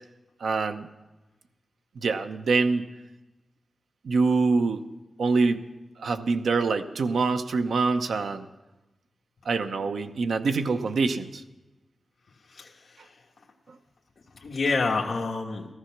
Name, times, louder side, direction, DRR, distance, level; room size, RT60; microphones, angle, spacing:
voice 1, 0.4-0.9 2.0-2.9 4.0-4.8 5.2-5.6 6.0-8.5 9.5-11.4, right 4 dB, 85° right, 9 dB, 0.8 m, -25 dB
voice 2, 12.5-13.2 14.3-15.7, left 3 dB, 50° left, -3 dB, 1.4 m, -28 dB
14.5 x 14.0 x 6.0 m, 1.1 s
wide cardioid pair, 160°, 0 cm